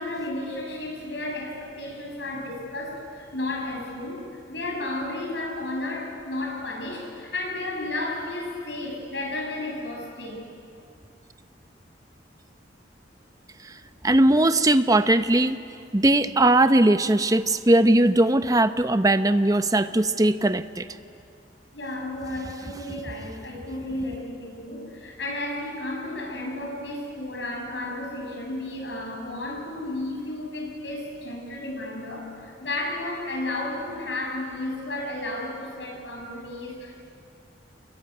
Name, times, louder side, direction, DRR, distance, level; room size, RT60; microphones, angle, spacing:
voice 1, 0.0-10.5 21.7-37.0, left 2 dB, 75° left, 1 dB, 7.2 m, -33 dB
voice 2, 14.0-15.6 15.9-20.9, right 1 dB, 20° right, 10 dB, 0.8 m, -19 dB
26.0 x 22.5 x 9.9 m, 2.5 s
head